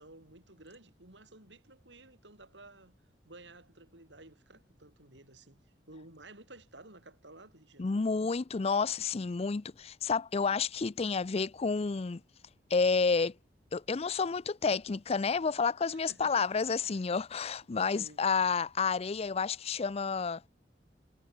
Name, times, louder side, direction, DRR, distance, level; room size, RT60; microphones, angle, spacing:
voice 1, 0.0-2.9 3.2-5.6 5.9-8.1 15.9-16.5 16.8-17.0 17.8-18.2, right 2 dB, 75° right, 7.5 m, -54 dB
voice 2, 7.8-12.2 12.7-13.3 13.7-20.4, left 5 dB, 35° left, 0.5 m, -30 dB
head